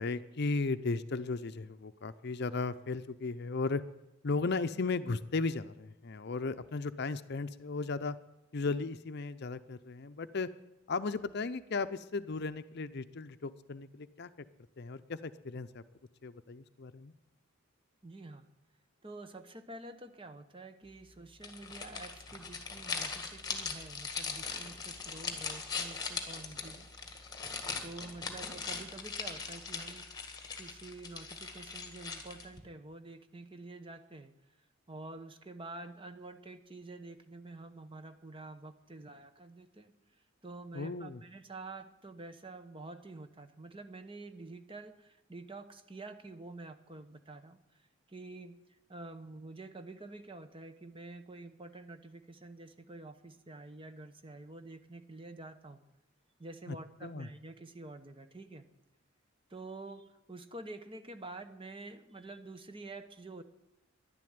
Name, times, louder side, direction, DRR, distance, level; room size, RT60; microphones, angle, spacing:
voice 1, 0.0-3.8 4.2-8.2 8.5-10.5 10.9-14.3 14.8-15.8 16.2-17.1 40.7-41.2 56.7-56.8 57.0-57.3, left 3 dB, 50° left, 12 dB, 0.6 m, -35 dB
voice 2, 18.0-18.5 19.0-26.9 27.8-30.0 30.6-34.3 34.9-39.9 40.4-47.6 48.1-48.6 48.9-55.8 56.4-58.6 59.5-63.4, right 2 dB, 25° right, 9 dB, 1.0 m, -48 dB
sound 1, 21.4-32.6, left 5 dB, 20° left, 1.8 m, -40 dB
11.0 x 11.0 x 9.5 m, 0.93 s
head